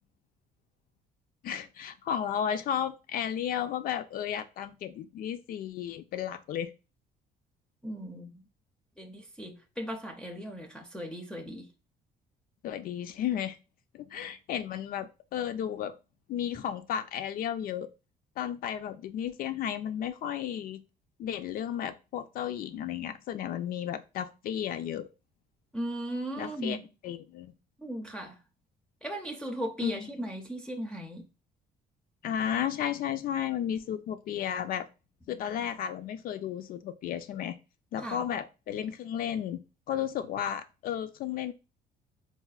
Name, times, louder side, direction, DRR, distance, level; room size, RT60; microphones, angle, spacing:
voice 1, 1.4-6.7 12.6-13.6 13.9-15.9 16.3-17.9 18.4-20.8 21.2-25.1 26.4-26.8 27.0-27.5 29.8-30.1 32.2-34.9 35.3-37.6 37.9-39.6 39.9-41.5, left 9 dB, 60° left, 0.4 m, -33 dB
voice 2, 7.8-8.4 9.0-11.7 16.6-16.7 25.7-26.8 27.8-28.4 29.0-31.3 38.0-38.2, right 1 dB, 5° left, 0.5 m, -37 dB
4.1 x 2.1 x 2.3 m
cardioid pair, 110°, 17 cm